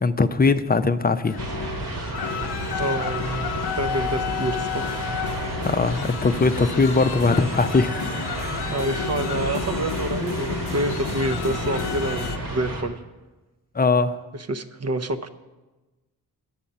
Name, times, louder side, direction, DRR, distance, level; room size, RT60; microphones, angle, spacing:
voice 1, 0.0-1.4 5.6-8.3 13.7-14.2, left 3 dB, 25° left, 12 dB, 0.6 m, -21 dB
sound 1, 1.2-12.4, left 7 dB, 85° left, 0.7 m, -31 dB
sound 2, 1.4-12.8, right 2 dB, 80° right, 2.1 m, -31 dB
voice 2, 2.8-4.9 8.7-13.0 14.3-15.3, right 1 dB, 40° right, 9 dB, 0.7 m, -28 dB
10.0 x 7.2 x 5.4 m, 1.2 s
cardioid pair, 50°, 38 cm